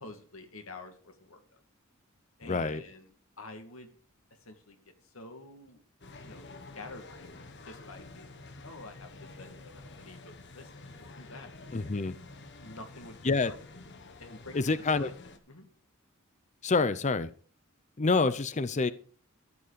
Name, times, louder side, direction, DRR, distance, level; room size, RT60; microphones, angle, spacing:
voice 1, 0.0-1.6 2.4-3.1 3.4-3.9 4.3-4.8 5.0-5.8 6.2-7.3 7.6-11.5 12.6-13.2 13.4-13.6 14.2-15.1 15.5-15.7 16.8-16.9, left 2 dB, 90° left, 5 dB, 2.4 m, -48 dB
voice 2, 2.4-2.8 11.7-12.2 13.2-13.5 14.5-15.1 16.6-17.3 18.0-18.9, left 3 dB, 35° left, 14 dB, 0.6 m, -27 dB
sound 1, 6.0-15.4, left 3 dB, 60° left, 1.5 m, -49 dB
13.5 x 8.2 x 5.1 m, 0.42 s
head